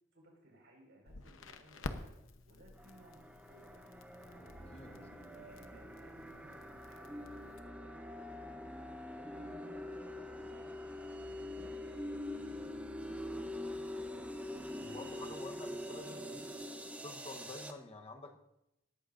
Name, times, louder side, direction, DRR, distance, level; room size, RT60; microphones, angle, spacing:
voice 1, 0.1-2.1 2.5-4.0 4.8-5.1 5.3-11.7 12.1-14.3 14.9-15.6, right 1 dB, 65° right, 0 dB, 5.0 m, -62 dB
Crackle, 1.1-7.6, left 2 dB, 80° left, 0.9 m, -50 dB
sound 1, 2.8-17.7, left 1 dB, 5° right, 0.8 m, -44 dB
sound 2, 4.1-7.8, equal, 50° left, 6.1 m, -58 dB
voice 2, 14.8-16.5 17.0-18.4, left 2 dB, 30° left, 3 dB, 1.0 m, -49 dB
18.5 x 14.0 x 2.6 m, 0.87 s
head